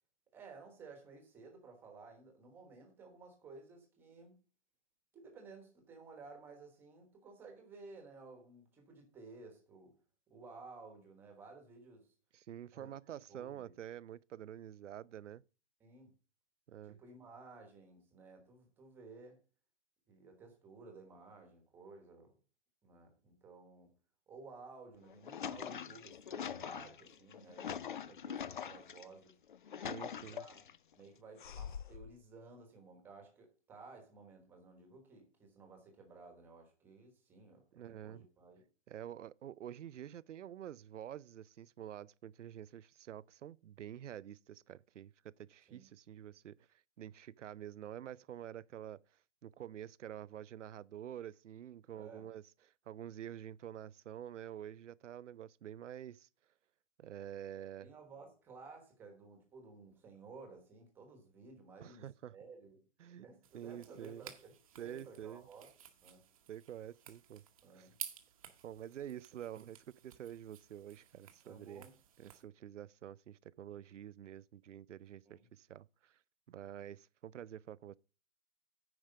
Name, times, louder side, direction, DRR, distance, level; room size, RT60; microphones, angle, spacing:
voice 1, 0.3-4.4 5.1-10.0 10.3-12.1 12.7-12.9 13.3-13.7 15.8-16.1 16.8-19.4 20.1-22.3 22.8-23.9 24.3-29.3 30.0-30.6 31.0-37.6 38.0-38.6 45.7-45.9 51.9-52.3 57.8-62.8 63.2-65.7 66.0-66.3 67.6-68.0 71.4-71.9 75.2-75.5, right 4 dB, 5° right, 1.2 m, -55 dB
voice 2, 12.3-15.4 16.7-17.0 29.8-30.5 37.7-38.3 38.9-49.0 49.4-52.4 52.9-56.3 57.0-57.9 61.8-62.3 63.0-63.3 63.5-64.2 64.8-65.5 66.5-67.4 67.7-67.9 68.6-71.9 72.2-76.2 76.5-78.0, right 10 dB, 90° right, 0.6 m, -48 dB
sound 1, 24.9-29.0 29.5-30.8 31.4-32.1, left 8 dB, 45° left, 0.5 m, -43 dB
sound 2, 63.4-72.4, right 9 dB, 30° right, 1.0 m, -53 dB
9.4 x 5.0 x 6.5 m
hypercardioid pair, 170°, 35 cm